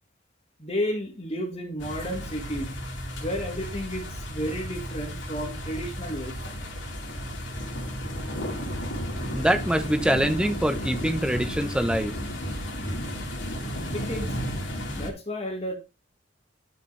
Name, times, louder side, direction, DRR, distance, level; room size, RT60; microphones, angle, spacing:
voice 1, 0.6-2.8 3.2-6.4 13.9-14.4 14.9-15.7, equal, 30° left, 3 dB, 1.8 m, -32 dB
sound 1, 1.8-15.1, equal, 80° left, 2.6 m, -33 dB
voice 2, 9.3-12.1, right 1 dB, 5° right, 6 dB, 0.9 m, -24 dB
11.0 x 6.0 x 3.3 m, 0.27 s
head